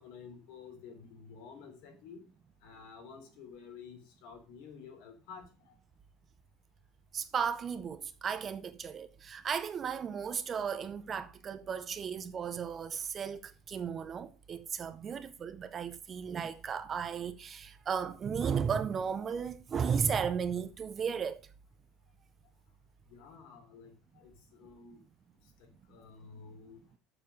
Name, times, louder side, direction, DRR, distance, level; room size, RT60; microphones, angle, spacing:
voice 1, 0.0-2.2 2.6-5.8 23.1-25.0 25.9-26.8, left 6 dB, 60° left, 3.4 m, -51 dB
voice 2, 7.1-21.4, right 7 dB, 20° right, 0.5 m, -35 dB
7.3 x 6.8 x 6.4 m
cardioid pair, 175°, 0 cm